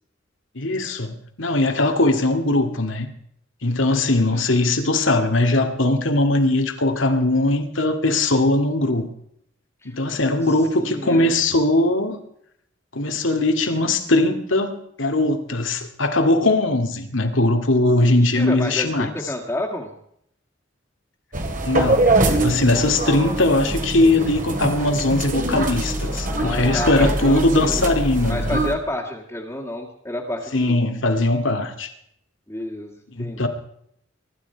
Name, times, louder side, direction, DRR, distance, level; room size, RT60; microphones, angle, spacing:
voice 1, 0.5-3.1 3.6-9.1 9.8-12.2 12.9-19.1 21.6-28.6 30.5-31.9 33.1-33.5, left 2 dB, 85° left, 2.4 m, -20 dB
voice 2, 10.5-11.3 18.0-19.9 26.1-28.0 28.3-30.8 32.5-33.5, left 1 dB, 15° left, 2.1 m, -30 dB
sound 1, 21.3-28.7, right 2 dB, 45° right, 2.5 m, -23 dB
23.5 x 12.0 x 4.7 m
head